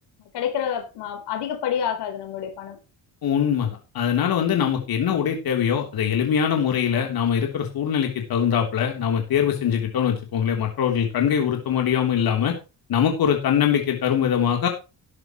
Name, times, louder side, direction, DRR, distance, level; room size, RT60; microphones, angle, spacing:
voice 1, 0.3-2.8, left 8 dB, 85° left, 5 dB, 4.1 m, -28 dB
voice 2, 3.2-12.6 12.9-14.7, left 8 dB, 65° left, 3 dB, 3.6 m, -22 dB
13.5 x 11.0 x 3.1 m, 0.29 s
cardioid pair, 105°, 39 cm